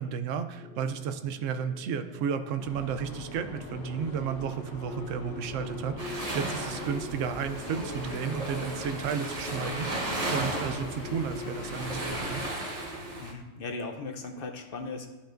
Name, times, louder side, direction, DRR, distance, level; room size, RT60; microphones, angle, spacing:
voice 1, 0.0-9.9 10.3-12.4, right 7 dB, 85° right, 9 dB, 0.9 m, -33 dB
sound 1, 0.5-13.2, left 2 dB, 5° left, 0.7 m, -44 dB
sound 2, 2.6-12.5, left 2 dB, 75° left, 1.3 m, -42 dB
sound 3, 6.0-13.3, right 2 dB, 35° right, 1.0 m, -36 dB
voice 2, 13.2-15.1, left 3 dB, 55° left, 5 dB, 0.7 m, -37 dB
11.5 x 5.2 x 2.5 m, 1.2 s
omnidirectional pair, 1.3 m